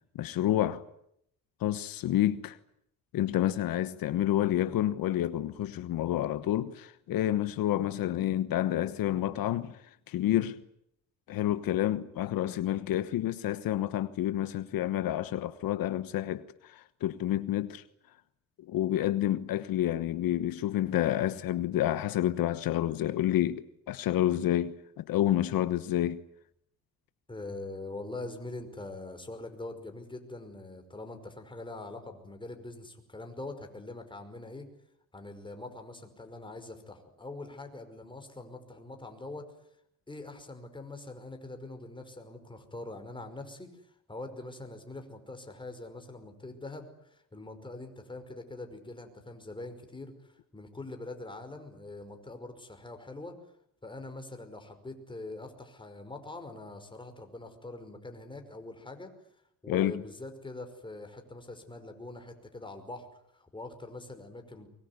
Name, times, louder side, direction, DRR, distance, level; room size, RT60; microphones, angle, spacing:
voice 1, 0.2-0.8 1.6-2.6 3.1-9.8 10.1-10.6 11.3-17.8 18.7-26.2 59.7-60.0, left 13 dB, 75° left, 1.2 m, -29 dB
voice 2, 27.3-34.7 35.1-39.5 40.1-53.4 53.8-59.1 59.6-63.1 63.3-64.7, left 2 dB, 15° left, 5.3 m, -43 dB
23.5 x 22.5 x 9.6 m
cardioid pair, 120°, 35 cm